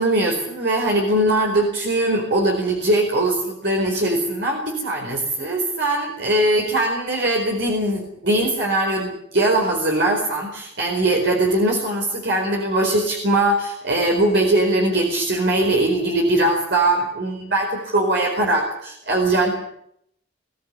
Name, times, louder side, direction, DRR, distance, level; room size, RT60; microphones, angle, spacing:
voice 1, 0.0-19.5, right 1 dB, 60° right, 0 dB, 4.6 m, -21 dB
23.0 x 15.5 x 9.8 m, 0.72 s
head